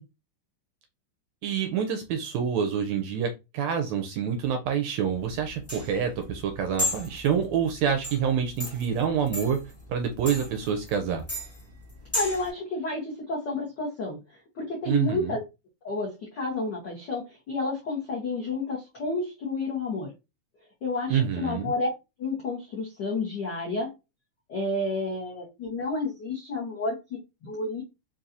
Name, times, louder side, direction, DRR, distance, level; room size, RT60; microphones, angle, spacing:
voice 1, 1.4-9.6 9.9-11.2 14.9-15.3 21.1-21.7, right 7 dB, 80° right, 5 dB, 1.6 m, -27 dB
sound 1, 5.1-12.5, left 2 dB, 15° left, 0.5 m, -35 dB
voice 2, 12.1-14.2 14.5-15.4 15.8-20.1 20.8-21.9 22.2-23.9 24.5-27.8, left 3 dB, 75° left, -4 dB, 1.0 m, -30 dB
5.5 x 2.6 x 2.5 m, 0.25 s
omnidirectional pair, 3.6 m